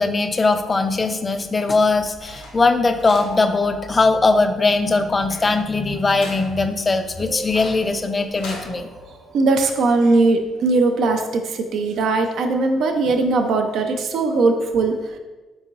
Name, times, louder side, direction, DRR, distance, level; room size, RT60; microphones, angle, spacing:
voice 1, 0.0-8.9, left 3 dB, 25° left, 8 dB, 0.3 m, -20 dB
sound 1, 1.9-8.7, left 2 dB, 90° left, 0.8 m, -41 dB
sound 2, 3.2-5.1 7.2-9.9, equal, 50° right, 0.8 m, -40 dB
voice 2, 9.3-15.2, right 3 dB, 70° right, 5 dB, 0.4 m, -19 dB
3.8 x 3.5 x 3.0 m, 1.2 s
cardioid pair, 95°, 0 cm